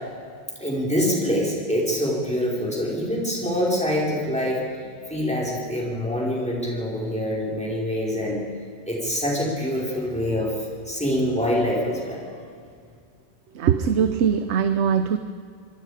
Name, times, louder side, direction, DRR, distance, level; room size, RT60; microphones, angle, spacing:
voice 1, 0.6-4.8 5.1-8.4 8.9-12.2, equal, 5° left, -4 dB, 5.1 m, -25 dB
voice 2, 13.6-15.2, right 7 dB, 90° right, 10 dB, 1.1 m, -21 dB
26.5 x 21.5 x 5.1 m, 2.2 s
omnidirectional pair, 1.1 m